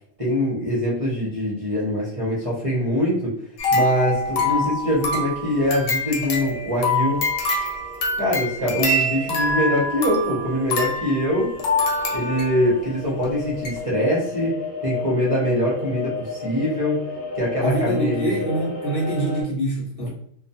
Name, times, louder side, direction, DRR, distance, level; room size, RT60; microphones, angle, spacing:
voice 1, 0.2-3.3 3.7-7.2 8.2-11.5 12.1-14.6 14.8-17.0 17.3-18.4 20.0-20.1, equal, 40° right, -6 dB, 0.6 m, -23 dB
sound 1, 3.6-12.8 13.2-13.3 13.7-13.8, left 2 dB, 80° left, 1.0 m, -25 dB
sound 2, 5.2-5.3 5.7-19.4, left 4 dB, 15° left, 0.7 m, -34 dB
voice 2, 17.6-20.1, right 1 dB, 55° left, -3 dB, 0.8 m, -25 dB
2.2 x 2.2 x 2.7 m, 0.67 s
omnidirectional pair, 1.3 m